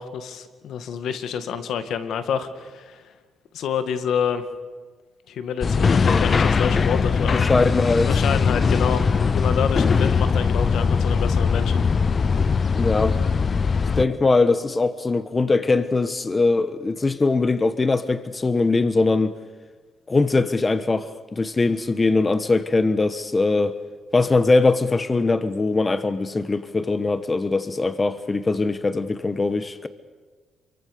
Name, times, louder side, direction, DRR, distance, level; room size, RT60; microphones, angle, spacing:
voice 1, 0.0-3.0 3.5-4.4 5.3-7.5 8.0-11.8, left 7 dB, 75° left, 2.1 m, -28 dB
sound 1, 5.6-14.0, left 5 dB, 40° left, 0.9 m, -20 dB
voice 2, 7.4-8.2 12.7-19.4 20.1-23.8 24.1-29.9, left 3 dB, 25° left, 1.2 m, -21 dB
28.0 x 24.0 x 6.8 m
cardioid pair, 90°, 0 cm